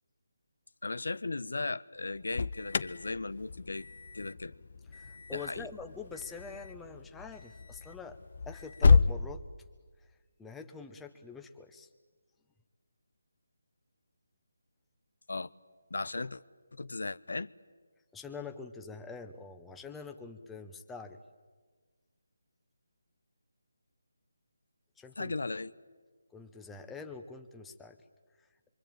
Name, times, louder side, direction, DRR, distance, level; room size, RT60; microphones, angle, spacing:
voice 1, 0.8-3.9 4.1-4.6 5.3-5.7 15.3-15.5 15.9-16.4 16.7-17.5 25.2-25.7, left 3 dB, 80° left, 16 dB, 0.9 m, -36 dB
Alarm, 2.0-9.1, left 4 dB, 50° left, 0.8 m, -30 dB
voice 2, 4.9-8.2 8.5-9.4 10.4-11.9 18.1-21.2 25.0-25.3 26.3-28.0 28.4-28.5, left 5 dB, 5° left, 6 dB, 1.1 m, -45 dB
26.0 x 24.0 x 9.1 m, 1.5 s
figure-of-eight pair, 165°, 0 cm